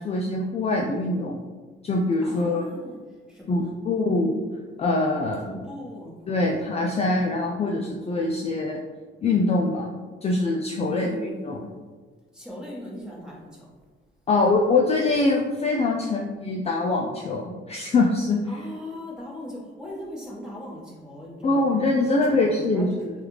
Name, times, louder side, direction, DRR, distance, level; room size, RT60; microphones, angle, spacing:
voice 1, 0.0-1.4 1.8-2.7 3.5-4.4 4.8-5.6 6.3-8.8 9.2-11.7 14.3-18.6 21.4-23.1, left 2 dB, 30° left, -1 dB, 0.4 m, -24 dB
voice 2, 2.2-3.0 3.3-3.7 5.4-6.7 10.8-11.5 12.3-13.6 18.5-23.0, left 1 dB, 5° right, -6 dB, 1.2 m, -39 dB
3.3 x 2.4 x 3.1 m, 1.4 s
cardioid pair, 90°, 20 cm